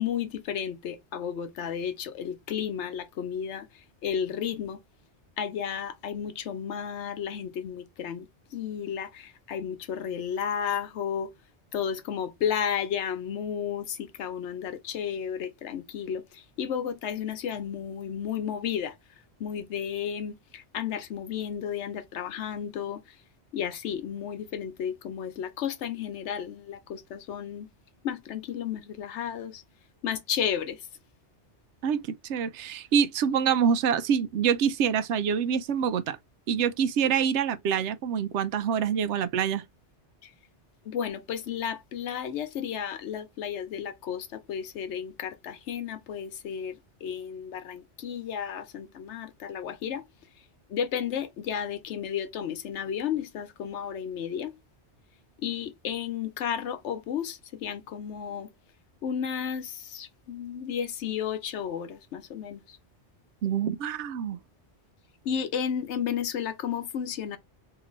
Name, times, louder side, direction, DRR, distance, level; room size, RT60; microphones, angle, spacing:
voice 1, 0.0-3.7 4.0-4.8 5.4-8.3 8.5-11.3 11.7-18.9 19.4-23.0 23.5-27.7 28.0-29.6 30.0-30.8 40.2-40.3 40.8-50.0 50.7-54.5 55.4-58.5 59.0-62.8 65.2-67.4, left 8 dB, 80° left, 1.0 m, -33 dB
voice 2, 31.8-36.2 36.5-39.6 63.4-64.4, right 7 dB, 80° right, 0.9 m, -26 dB
3.9 x 2.9 x 3.0 m
omnidirectional pair, 1.2 m